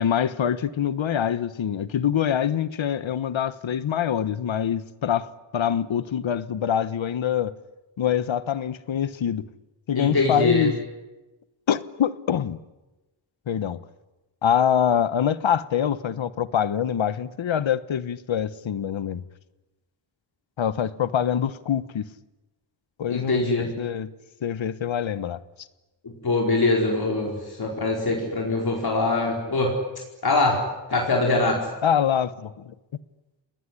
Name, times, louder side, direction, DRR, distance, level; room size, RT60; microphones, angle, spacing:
voice 1, 0.0-7.5 8.0-9.5 9.9-10.8 11.7-12.6 13.5-13.8 14.4-19.2 20.6-22.0 23.0-24.1 24.4-25.4 31.8-32.7, left 9 dB, 75° left, 1.3 m, -25 dB
voice 2, 9.9-10.7 23.1-23.7 26.0-29.8 30.2-30.6 30.9-31.7, left 2 dB, 50° left, 5.0 m, -23 dB
29.5 x 20.0 x 9.9 m
wide cardioid pair, 125°, 47 cm